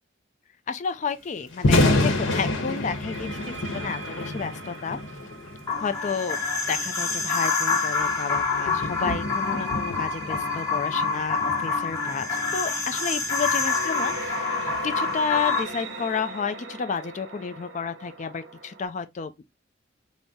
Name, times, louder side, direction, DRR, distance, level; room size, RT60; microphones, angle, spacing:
voice 1, 0.7-5.0 5.8-6.4 6.7-12.3 12.5-19.5, left 5 dB, 40° left, 0.4 m, -31 dB
sound 1, 1.0-1.3 2.8-7.6 8.4-18.8, right 3 dB, 65° right, 0.7 m, -41 dB
Thunder, 1.5-15.6, left 2 dB, 80° left, 0.9 m, -30 dB
sound 2, 5.7-15.6, left 4 dB, 15° left, 0.9 m, -27 dB
4.0 x 2.1 x 3.5 m
head